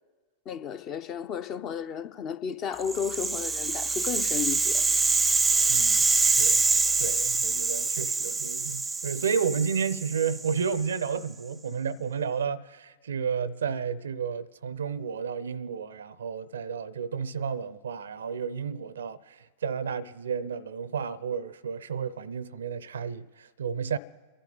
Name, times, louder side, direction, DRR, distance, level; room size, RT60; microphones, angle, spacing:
voice 1, 0.5-4.8, left 7 dB, 35° left, 0.7 m, -33 dB
Rattle (instrument), 2.8-11.0, right 4 dB, 10° right, 0.6 m, -25 dB
voice 2, 5.7-6.6 7.0-24.0, right 6 dB, 65° right, 0.5 m, -32 dB
29.5 x 11.5 x 4.0 m
figure-of-eight pair, 90°, 0 cm